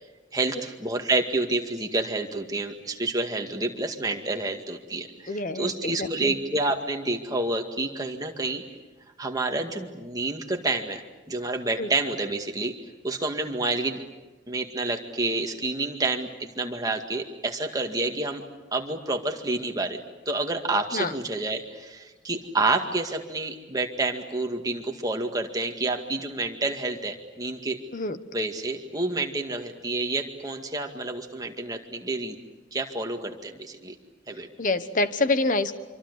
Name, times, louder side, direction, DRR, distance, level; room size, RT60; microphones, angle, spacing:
voice 1, 0.3-8.6 9.2-11.0 11.3-12.7 13.0-14.0 14.5-18.4 18.7-20.0 20.3-27.8 28.3-32.4 32.7-33.9 34.3-34.5, right 2 dB, 20° right, 3 dB, 2.0 m, -29 dB
voice 2, 5.3-6.4 11.8-11.9 20.9-21.1 27.9-28.2 34.6-35.7, left 2 dB, 45° left, 11 dB, 1.2 m, -26 dB
26.0 x 24.5 x 8.2 m, 1.2 s
head